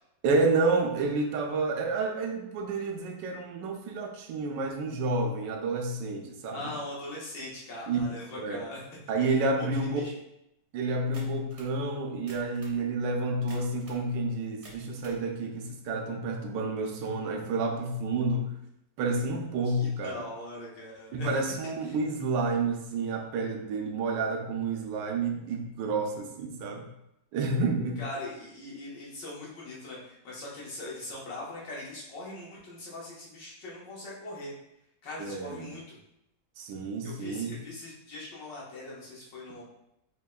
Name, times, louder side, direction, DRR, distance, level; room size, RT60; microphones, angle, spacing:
voice 1, 0.2-6.7 7.9-8.0 8.3-8.6 9.1-10.0 10.7-18.5 19.0-20.2 21.1-26.9 27.3-28.0 35.2-35.7 36.6-37.5, right 3 dB, 85° right, 2 dB, 1.3 m, -29 dB
voice 2, 6.5-8.8 9.6-10.1 19.6-21.3 21.8-22.0 28.0-34.5 35.0-36.0 37.0-39.6, left 2 dB, 80° left, -6 dB, 1.9 m, -41 dB
sound 1, 11.1-11.7 12.2-12.8 13.5-14.0 14.5-15.2, right 1 dB, 45° right, 0.4 m, -50 dB
5.3 x 2.8 x 2.3 m, 0.82 s
omnidirectional pair, 1.9 m